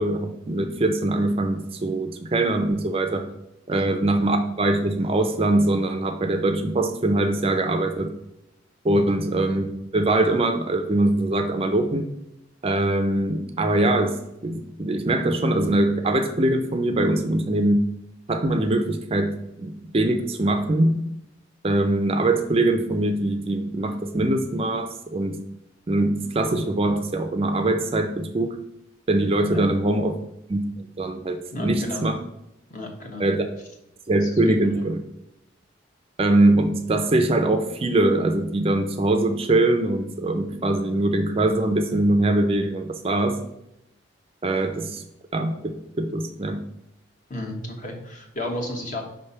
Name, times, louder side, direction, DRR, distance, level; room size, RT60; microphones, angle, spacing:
voice 1, 0.0-3.3 3.7-8.1 8.8-9.7 9.9-12.1 12.6-14.2 14.4-17.9 18.3-21.0 21.6-25.4 25.9-28.6 29.1-30.2 30.5-32.2 33.2-33.5 34.1-35.0 36.2-43.4 44.4-45.0 45.3-46.6, right 2 dB, 30° right, 7 dB, 0.5 m, -22 dB
voice 2, 31.5-32.1 32.7-33.2 34.2-34.8 47.3-49.0, left 1 dB, 40° left, 1 dB, 1.3 m, -33 dB
5.2 x 3.3 x 5.6 m, 0.86 s
head